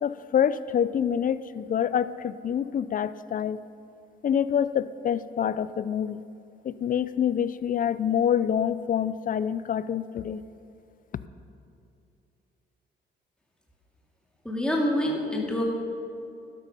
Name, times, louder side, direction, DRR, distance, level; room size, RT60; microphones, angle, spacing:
voice 1, 0.0-3.6 4.2-6.2 6.6-10.4, left 8 dB, 45° left, 15 dB, 0.5 m, -26 dB
voice 2, 14.4-15.6, left 1 dB, 5° left, -2 dB, 2.4 m, -26 dB
12.5 x 12.0 x 5.4 m, 2.6 s
cardioid pair, 90°, 20 cm